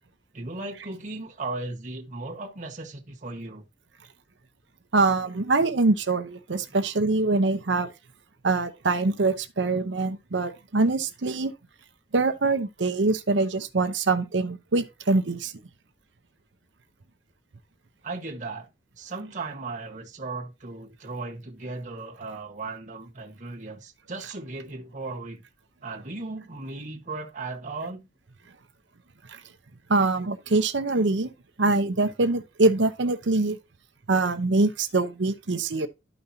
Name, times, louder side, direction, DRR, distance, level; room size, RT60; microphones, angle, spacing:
voice 1, 0.3-3.6 18.0-18.7 19.0-25.4 25.8-28.1, right 3 dB, 45° right, 1.4 m, -36 dB
voice 2, 4.9-7.9 8.4-11.5 12.1-15.5 29.3-29.4 29.9-31.3 31.6-33.6 34.1-35.9, right 3 dB, 80° right, 0.8 m, -24 dB
12.0 x 5.3 x 2.8 m
head